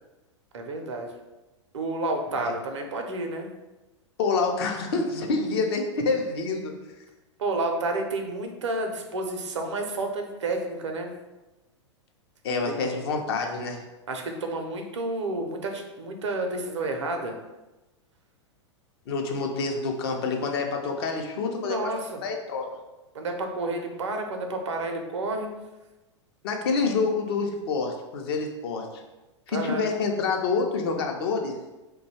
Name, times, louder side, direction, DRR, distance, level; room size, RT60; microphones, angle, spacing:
voice 1, 0.5-1.1 1.7-3.5 7.4-11.1 12.7-12.8 14.1-17.4 21.6-22.2 23.1-25.5 29.5-29.8, right 2 dB, 70° right, 4 dB, 0.6 m, -30 dB
voice 2, 4.2-6.8 12.4-13.8 19.1-21.9 22.2-22.7 26.4-29.0 29.5-31.6, left 4 dB, 55° left, 2 dB, 0.6 m, -27 dB
2.7 x 2.3 x 4.1 m, 1.0 s
figure-of-eight pair, 95°, 16 cm